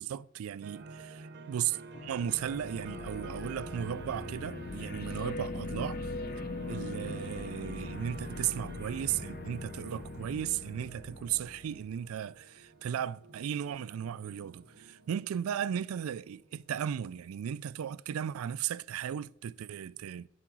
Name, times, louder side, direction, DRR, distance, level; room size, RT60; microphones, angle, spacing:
voice 1, 0.0-1.1 1.5-6.0 6.7-20.3, right 9 dB, 85° right, 0.3 m, -36 dB
sound 1, 0.6-16.9, right 3 dB, 55° right, 0.8 m, -50 dB
sound 2, 1.9-12.1, left 2 dB, 45° left, 0.6 m, -41 dB
sound 3, 3.9-10.4, equal, 10° left, 1.0 m, -53 dB
10.0 x 5.7 x 6.0 m
head